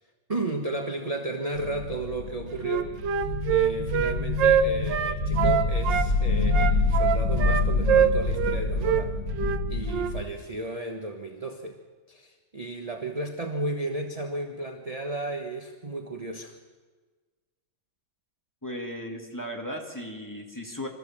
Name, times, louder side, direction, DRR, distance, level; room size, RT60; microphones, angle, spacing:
voice 1, 0.3-2.9 3.5-9.1 9.7-11.8 12.1-16.6, right 2 dB, 25° right, 4 dB, 0.9 m, -33 dB
sound 1, 1.5-10.2, left 3 dB, 45° left, 2.4 m, -27 dB
Wind instrument woodwind instrument, 2.6-6.1 6.5-8.6 8.8-9.0 9.3-9.6 9.9-10.1, right 9 dB, 65° right, 1.4 m, -24 dB
voice 2, 18.6-20.9, equal, 10° left, 1 dB, 2.2 m, -36 dB
25.5 x 14.5 x 7.4 m, 1.4 s
omnidirectional pair, 2.3 m